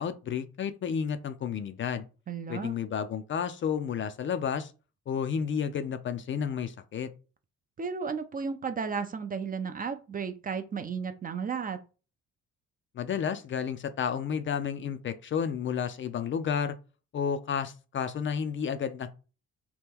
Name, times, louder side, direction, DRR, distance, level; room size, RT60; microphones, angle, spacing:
voice 1, 0.0-2.0 2.5-4.7 5.1-7.1 13.0-16.8 17.1-19.1, left 7 dB, 40° left, 0.4 m, -31 dB
voice 2, 2.3-2.8 7.8-11.8, right 6 dB, 30° right, 0.4 m, -34 dB
2.9 x 2.2 x 3.5 m
cardioid pair, 90°, 30 cm